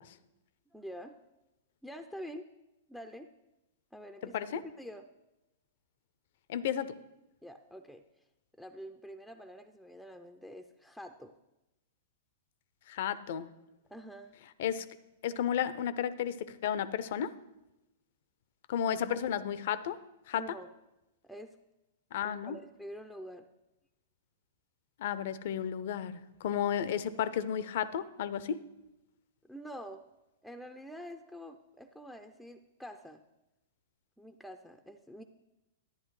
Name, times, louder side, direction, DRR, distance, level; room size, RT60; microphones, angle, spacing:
voice 1, 0.7-1.2 1.8-2.5 2.9-3.3 3.9-4.4 4.6-5.0 7.4-8.0 8.6-11.3 13.9-14.3 19.1-19.2 20.3-20.7 21.2-21.6 22.2-23.5 29.4-30.1 30.4-33.2 34.2-35.2, equal, ahead, 6 dB, 0.4 m, -46 dB
voice 2, 4.2-4.6 6.5-7.0 12.9-13.5 14.6-14.9 15.2-17.3 18.7-20.0 20.3-20.6 22.1-22.5 25.0-28.6, left 9 dB, 60° left, 16 dB, 0.5 m, -33 dB
11.0 x 10.0 x 3.1 m, 0.95 s
hypercardioid pair, 115°, 0 cm